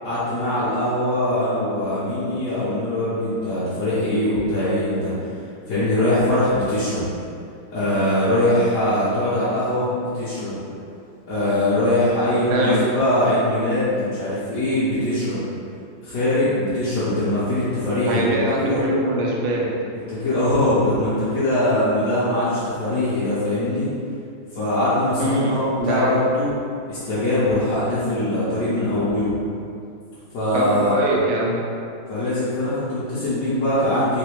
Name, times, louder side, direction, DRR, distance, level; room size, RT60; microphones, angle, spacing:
voice 1, 0.0-5.4 5.7-7.0 7.7-10.6 11.3-15.4 16.0-18.8 20.1-23.9 24.5-26.5 26.9-29.3 30.3-30.9 32.1-34.2, left 1 dB, 50° left, -14 dB, 1.3 m, -22 dB
voice 2, 12.5-12.8 18.1-19.6 25.2-26.1 30.5-31.5, right 1 dB, 85° right, -3 dB, 1.6 m, -22 dB
5.1 x 2.2 x 4.6 m, 2.4 s
omnidirectional pair, 2.2 m